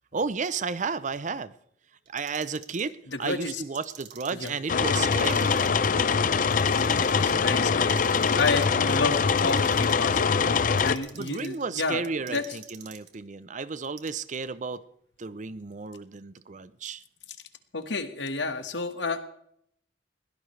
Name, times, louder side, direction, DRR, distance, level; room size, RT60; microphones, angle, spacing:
voice 1, 0.1-1.5 2.1-5.6 11.1-14.8 15.2-17.0, right 5 dB, 40° right, 16 dB, 0.6 m, -33 dB
Clock, 2.1-2.9 3.6-4.5 5.0-5.9 6.4-7.3 7.8-8.7 9.2-10.1 10.6-11.6 12.3-13.2 13.8-14.4, right 9 dB, 65° right, 1.7 m, -47 dB
voice 2, 3.1-3.6 4.3-4.6 7.0-8.0 8.3-10.4 10.8-12.4 17.7-19.2, left 3 dB, 75° left, 8 dB, 1.5 m, -30 dB
sound 1, 4.7-10.9, left 5 dB, 45° left, 0.6 m, -23 dB
21.0 x 17.0 x 3.3 m, 0.70 s
head